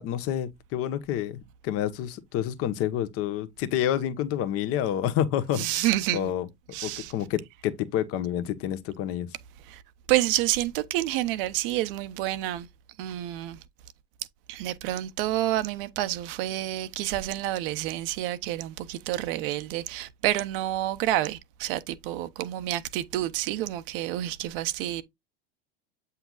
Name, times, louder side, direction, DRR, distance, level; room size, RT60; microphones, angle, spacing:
voice 1, 0.0-5.8 6.1-6.5 6.8-9.3, left 11 dB, 50° left, 1.1 m, -29 dB
voice 2, 5.5-6.3 6.7-7.1 9.6-9.8 10.1-12.7 13.0-13.6 14.5-25.0, right 14 dB, 65° right, 0.8 m, -29 dB
8.1 x 5.6 x 2.4 m
hypercardioid pair, 90°, 30 cm